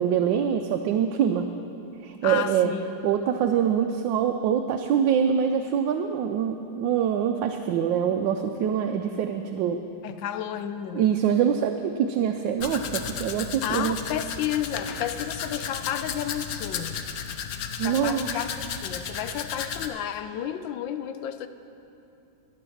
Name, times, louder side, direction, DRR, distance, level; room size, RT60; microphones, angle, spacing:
voice 1, 0.0-1.5 2.0-2.7 3.0-9.8 10.9-14.0 17.8-18.4, right 8 dB, 80° right, 5 dB, 1.3 m, -24 dB
voice 2, 2.2-2.9 10.0-11.1 13.6-17.0 17.8-21.5, left 10 dB, 85° left, 10 dB, 1.3 m, -32 dB
Domestic sounds home sounds, 12.6-19.9, left 7 dB, 65° left, 1.0 m, -34 dB
12.0 x 10.0 x 6.3 m, 2.8 s
omnidirectional pair, 2.0 m